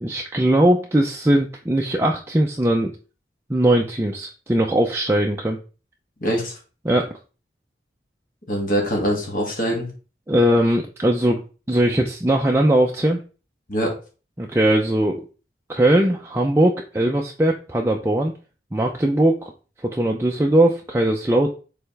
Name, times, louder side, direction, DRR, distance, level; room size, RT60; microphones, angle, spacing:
voice 1, 0.0-2.9 3.5-5.6 6.8-7.1 10.3-11.4 11.7-13.2 14.4-15.2 15.7-18.3 18.7-19.5 19.8-21.5, right 1 dB, 15° right, 0 dB, 0.5 m, -19 dB
voice 2, 6.2-6.5 8.5-9.9 13.7-13.9, equal, 50° left, -1 dB, 2.1 m, -23 dB
6.7 x 4.2 x 3.4 m, 0.35 s
head